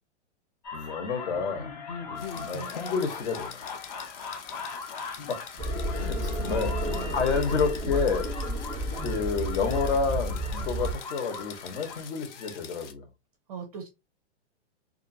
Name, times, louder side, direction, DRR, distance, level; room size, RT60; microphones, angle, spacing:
sound 1, 0.6-12.6, left 5 dB, 40° left, 0.4 m, -40 dB
voice 1, 0.7-1.7 2.1-3.6 5.3-5.4 5.9-6.7 7.1-8.3 9.0-13.1, left 5 dB, 70° left, 1.1 m, -29 dB
sound 2, 2.2-12.9, left 8 dB, 85° left, 0.6 m, -46 dB
voice 2, 2.4-2.7 6.5-7.2 8.9-9.2 13.5-13.9, right 5 dB, 35° right, 0.4 m, -39 dB
sound 3, 5.6-10.9, equal, 5° left, 0.8 m, -31 dB
2.5 x 2.5 x 2.6 m
hypercardioid pair, 160°, 35 cm